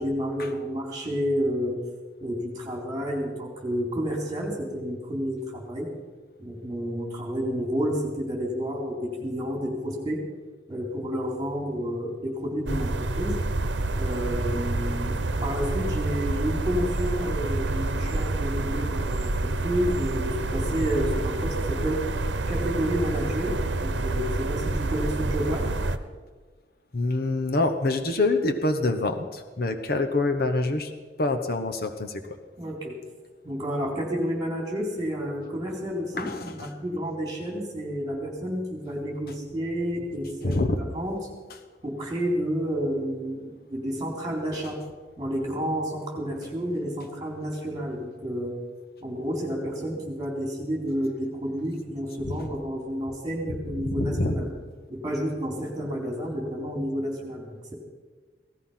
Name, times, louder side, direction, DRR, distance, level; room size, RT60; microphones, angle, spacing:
voice 1, 0.0-1.8 2.2-5.9 6.4-10.2 10.7-13.4 14.0-22.0 22.5-25.7 32.6-33.0 33.4-41.2 41.8-44.8 45.2-48.6 49.0-54.5 54.9-57.7, equal, 20° right, 0 dB, 3.8 m, -30 dB
sound 1, 12.7-26.0, right 2 dB, 85° right, 0.9 m, -28 dB
voice 2, 26.9-30.9 31.2-32.3 36.1-36.7 40.4-40.8 44.5-44.6 52.2-52.5 53.8-54.4, left 2 dB, 55° left, 6 dB, 1.0 m, -26 dB
17.5 x 14.0 x 5.8 m, 1.4 s
head